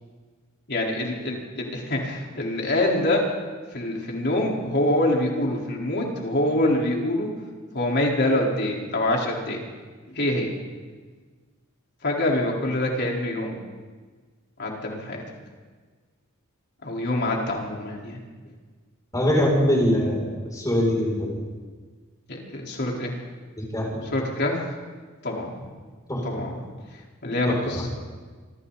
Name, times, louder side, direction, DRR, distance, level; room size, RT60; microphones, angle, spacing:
voice 1, 0.7-3.3 3.7-7.3 7.7-9.6 10.1-10.5 12.0-13.6 14.6-15.2 16.8-18.2 22.3-23.1 24.0-24.6 25.2-25.6 26.2-26.6 27.2-27.9, left 1 dB, 55° left, -2 dB, 4.4 m, -25 dB
voice 2, 19.1-21.4 23.6-24.0 26.1-26.2 27.5-27.8, equal, 15° left, -2 dB, 6.8 m, -23 dB
26.0 x 24.5 x 4.2 m, 1.5 s
head